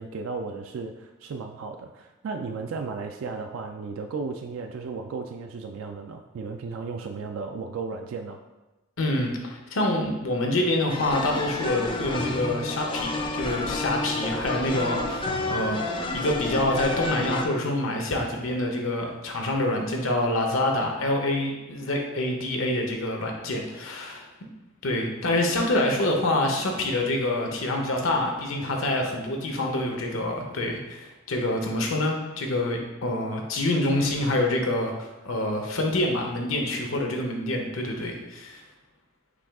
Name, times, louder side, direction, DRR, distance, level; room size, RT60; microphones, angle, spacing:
voice 1, 0.0-8.4, right 4 dB, 75° right, 5 dB, 0.3 m, -35 dB
voice 2, 9.0-24.2 24.8-38.6, left 1 dB, 80° left, 2 dB, 0.8 m, -26 dB
sound 1, 10.9-17.5, left 2 dB, 25° left, 0.4 m, -30 dB
6.0 x 2.3 x 3.5 m, 1.1 s
head